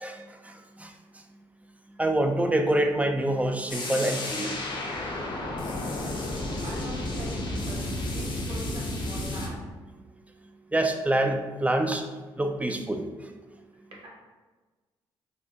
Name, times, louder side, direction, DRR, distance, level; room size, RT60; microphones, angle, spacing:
voice 1, 0.0-0.9 2.0-4.6 10.7-12.0 12.4-13.0, right 1 dB, 10° right, 5 dB, 0.4 m, -26 dB
sound 1, 3.7-9.5, left 1 dB, 40° left, 0.6 m, -32 dB
voice 2, 6.1-9.7, right 1 dB, 50° right, -4 dB, 1.3 m, -43 dB
3.4 x 2.1 x 2.7 m, 1.3 s
hypercardioid pair, 50°, 12 cm